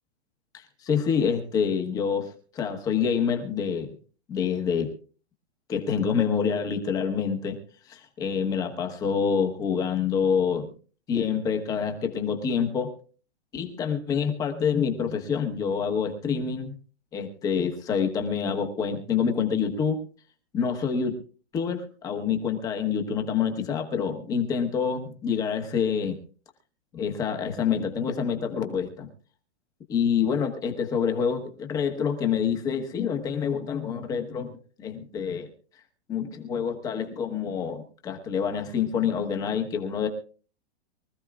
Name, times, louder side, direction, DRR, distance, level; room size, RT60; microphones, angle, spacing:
voice 1, 0.5-3.9 4.3-4.9 5.7-7.6 7.9-10.7 11.1-12.9 13.5-16.7 17.1-20.0 20.5-21.2 21.5-26.2 26.9-29.1 29.9-35.5 36.1-40.1, left 7 dB, 10° left, 5 dB, 1.2 m, -27 dB
23.5 x 14.5 x 2.4 m, 0.39 s
hypercardioid pair, 175°, 33 cm